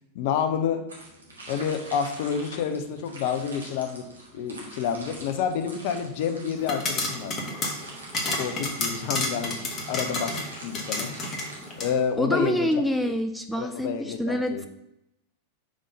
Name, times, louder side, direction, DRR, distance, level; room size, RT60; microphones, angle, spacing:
voice 1, 0.1-0.8 1.5-4.1 4.3-7.3 8.3-11.1 11.8-12.7 13.0-13.1 13.5-14.6, left 7 dB, 50° left, 8 dB, 0.6 m, -29 dB
sound 1, 0.9-12.2, right 1 dB, 75° right, 1.5 m, -45 dB
sound 2, 6.6-11.9, left 2 dB, 30° left, 1.2 m, -31 dB
voice 2, 12.2-14.7, equal, 5° left, 6 dB, 0.4 m, -26 dB
5.0 x 3.8 x 5.3 m, 0.85 s
figure-of-eight pair, 90°, 0 cm